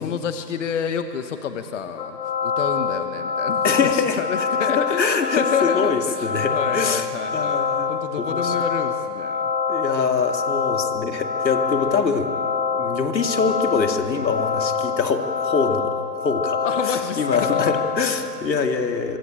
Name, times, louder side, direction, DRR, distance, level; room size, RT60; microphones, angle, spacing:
voice 1, 0.0-7.6 7.9-9.4 11.7-12.0 16.6-17.7, left 7 dB, 45° left, 8 dB, 1.4 m, -29 dB
sound 1, 2.0-18.0, left 6 dB, 30° left, 1.7 m, -25 dB
voice 2, 3.6-7.1 7.3-7.9 8.2-8.5 9.7-12.3 12.8-19.2, left 5 dB, 85° left, 5 dB, 2.7 m, -24 dB
24.5 x 23.5 x 8.9 m, 2.7 s
hypercardioid pair, 160°, 50 cm